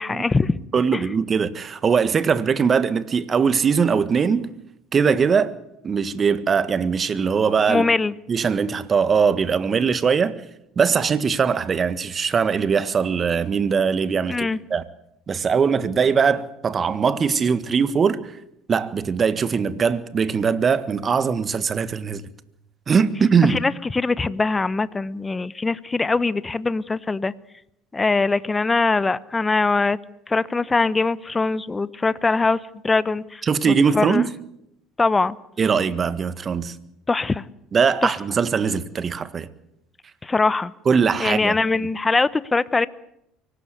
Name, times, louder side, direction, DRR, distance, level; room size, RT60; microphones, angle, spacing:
voice 1, 0.0-0.6 0.9-1.0 7.7-8.1 14.3-14.6 23.5-27.3 27.9-30.0 30.3-34.2 35.0-35.4 37.1-37.4 38.0-38.1 40.2-40.7 41.2-42.9, left 3 dB, 20° left, 1.0 m, -22 dB
voice 2, 0.7-4.5 4.9-5.5 5.8-7.8 8.3-10.4 10.7-14.8 15.3-18.3 18.7-22.2 22.9-23.6 33.4-34.3 35.6-36.7 37.7-39.5 40.8-41.6, right 6 dB, 35° right, 1.7 m, -21 dB
24.5 x 18.5 x 8.1 m
hypercardioid pair, 65°, 0 cm